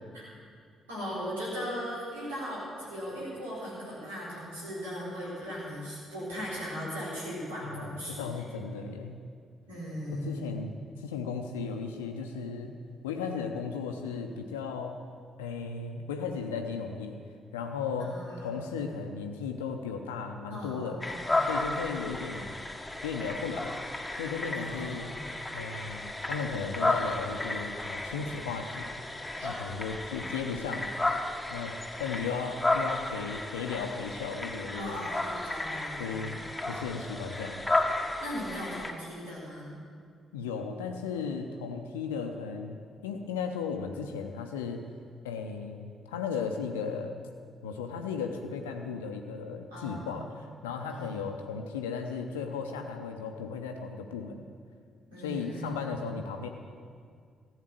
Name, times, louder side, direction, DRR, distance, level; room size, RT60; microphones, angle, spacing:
voice 1, 0.9-8.2 9.7-10.6 18.0-18.6 20.5-21.5 24.5-25.3 29.3-29.5 34.7-36.4 38.2-39.8 49.7-50.3 50.9-51.2 55.1-55.7 56.0-56.1, equal, 80° right, -9 dB, 4.0 m, -38 dB
voice 2, 7.6-9.2 10.1-10.7 11.0-12.8 13.0-15.0 15.4-17.2 17.5-21.0 21.4-22.6 23.0-23.8 24.1-25.1 25.5-28.9 29.4-30.9 31.5-35.1 36.0-36.4 36.7-37.6 40.3-42.8 43.0-44.8 45.2-47.2 47.6-54.4 55.2-56.5, left 5 dB, 80° left, 4 dB, 0.7 m, -35 dB
sound 1, 21.0-38.9, left 2 dB, 10° left, 1.3 m, -33 dB
14.5 x 8.2 x 7.6 m, 2.1 s
figure-of-eight pair, 40°, 0 cm